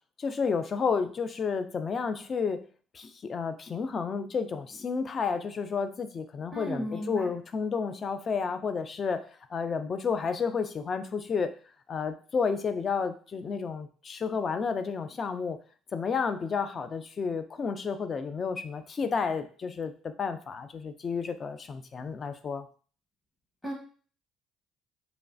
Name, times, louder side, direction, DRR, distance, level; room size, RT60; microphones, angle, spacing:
voice 1, 0.2-2.7 2.9-11.5 11.9-15.6 15.9-22.7, left 5 dB, 40° left, 9 dB, 0.3 m, -31 dB
voice 2, 6.5-7.3 23.6-23.7, equal, 20° left, -2 dB, 0.8 m, -34 dB
3.1 x 2.3 x 2.5 m, 0.41 s
supercardioid pair, 85°, 0 cm